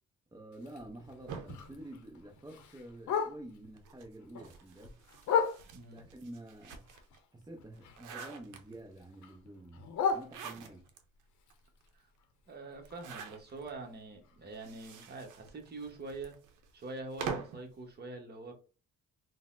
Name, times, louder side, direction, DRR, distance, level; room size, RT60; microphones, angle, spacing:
voice 1, 0.3-5.0 5.9-6.9 7.3-9.8 10.1-10.9, right 1 dB, 15° right, 0.5 m, -49 dB
Bark, 0.5-3.7 4.1-6.0 6.5-8.3 8.6-10.9 11.3-15.3 15.6-15.7 16.0-16.4 16.8-16.9 17.3-17.4 17.9-18.0, left 6 dB, 75° left, 0.7 m, -38 dB
sound 1, 1.3-2.9 3.7-7.2 7.6-9.0 10.0-11.0 11.5-11.6 11.8-11.9 12.8-13.7 14.5-17.7, right 6 dB, 85° right, 0.6 m, -45 dB
voice 2, 5.7-6.1 11.9-12.1 12.5-16.4 16.7-18.5, right 3 dB, 35° right, 1.0 m, -44 dB
3.8 x 2.1 x 2.4 m
cardioid pair, 90°, 30 cm